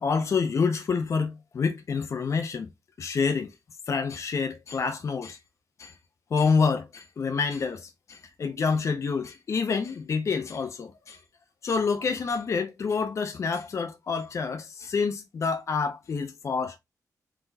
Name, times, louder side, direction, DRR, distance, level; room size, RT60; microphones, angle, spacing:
voice 1, 0.0-2.7 3.0-3.5 3.9-5.4 5.8-5.9 6.3-11.2 11.6-16.8, left 5 dB, 50° left, 0.7 m, -27 dB
3.9 x 3.7 x 2.7 m
wide cardioid pair, 120°, 6 cm